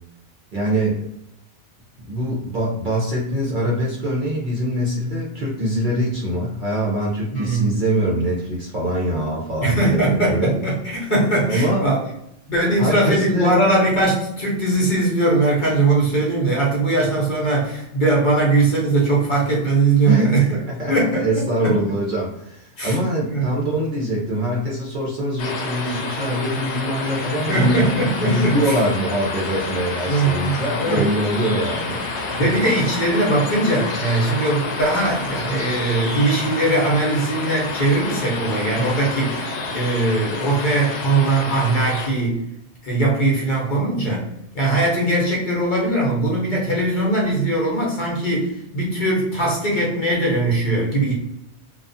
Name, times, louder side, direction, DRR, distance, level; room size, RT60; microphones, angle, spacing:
voice 1, 0.5-1.1 2.0-10.5 11.5-11.8 12.8-13.6 20.0-27.9 28.2-32.1, equal, 55° right, -3 dB, 0.7 m, -23 dB
voice 2, 7.3-7.7 9.6-12.0 12.5-20.5 20.9-21.3 21.6-21.8 22.8-23.0 23.3-23.5 27.4-28.8 30.1-31.0 32.3-42.4 42.8-44.3 44.5-51.1, right 2 dB, 50° left, -4 dB, 0.8 m, -20 dB
sound 1, 25.4-42.1, left 3 dB, 75° left, 0.8 m, -29 dB
2.3 x 2.3 x 2.5 m, 0.80 s
omnidirectional pair, 1.2 m